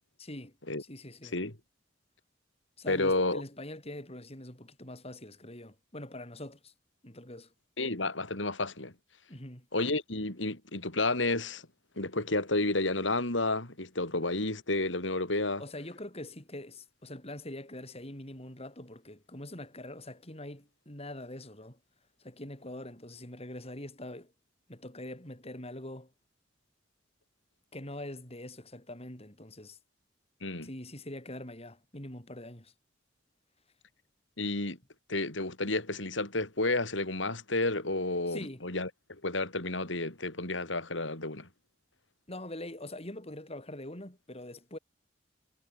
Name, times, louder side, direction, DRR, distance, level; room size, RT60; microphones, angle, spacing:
voice 1, 0.2-1.4 2.8-6.7 7.0-7.5 9.3-9.7 15.6-21.8 22.2-24.3 24.7-26.1 27.7-29.8 30.6-32.7 38.3-38.6 42.3-44.8, left 1 dB, 35° left, 6.1 m, -43 dB
voice 2, 2.9-3.4 7.8-8.9 9.7-11.6 12.0-15.6 30.4-30.7 34.4-34.8 35.1-41.5, left 2 dB, 80° left, 4.8 m, -31 dB
head